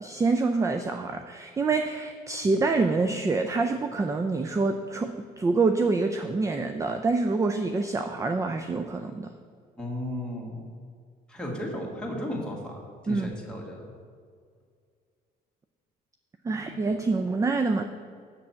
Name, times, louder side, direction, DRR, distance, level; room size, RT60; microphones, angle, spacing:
voice 1, 0.0-9.3 13.1-13.3 16.4-17.8, right 3 dB, 20° right, 7 dB, 0.4 m, -26 dB
voice 2, 9.8-10.7 11.3-13.9 16.5-16.6, left 1 dB, 5° left, -3 dB, 1.8 m, -35 dB
7.4 x 6.4 x 5.7 m, 2.1 s
cardioid pair, 110°, 17 cm